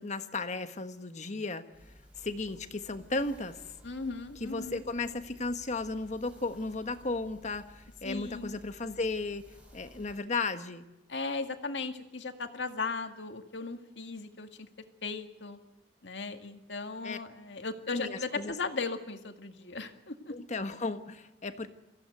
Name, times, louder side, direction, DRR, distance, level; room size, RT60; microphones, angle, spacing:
voice 1, 0.0-1.6 2.2-3.6 4.4-10.9 17.0-17.2 17.9-18.5 20.3-21.7, left 3 dB, 40° left, 9 dB, 1.4 m, -35 dB
sound 1, 1.7-10.2, equal, 10° right, 5.6 m, -56 dB
voice 2, 3.8-4.8 8.0-8.6 11.1-14.7 15.0-15.6 16.0-20.3, left 4 dB, 90° left, 6 dB, 2.0 m, -37 dB
24.5 x 16.0 x 9.2 m, 1.1 s
head